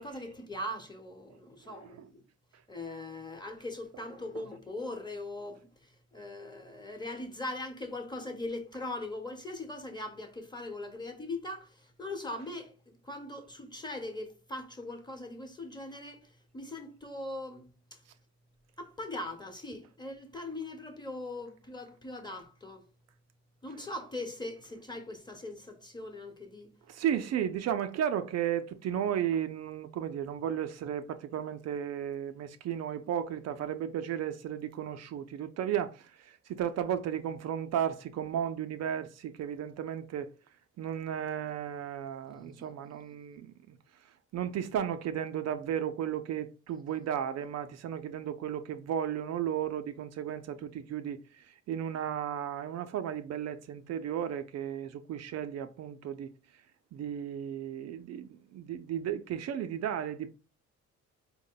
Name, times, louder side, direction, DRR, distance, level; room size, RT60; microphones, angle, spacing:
voice 1, 0.0-2.2 2.7-12.7 13.0-16.3 16.5-18.0 18.8-22.8 23.6-26.7 42.4-42.7, left 2 dB, 15° left, 1.0 m, -40 dB
voice 2, 1.7-2.1 26.9-40.3 40.8-43.8 44.3-56.3 56.9-60.3, right 9 dB, 60° right, 0.4 m, -34 dB
4.4 x 2.1 x 3.8 m
cardioid pair, 90°, 30 cm